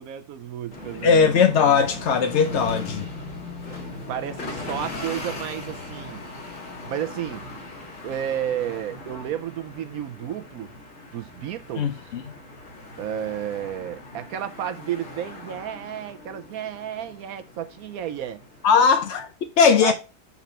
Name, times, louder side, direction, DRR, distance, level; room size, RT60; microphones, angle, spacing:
voice 1, 0.0-1.2 4.1-6.2 6.7-7.5 8.0-10.7 11.1-12.0 13.0-18.4 19.8-19.9, right 10 dB, 70° right, 0.9 m, -32 dB
sound 1, 0.7-19.3, left 2 dB, 45° left, 2.2 m, -39 dB
voice 2, 1.0-3.1 11.8-12.2 18.6-19.3 19.6-19.9, left 6 dB, 65° left, 0.7 m, -19 dB
7.1 x 4.1 x 4.2 m
omnidirectional pair, 2.0 m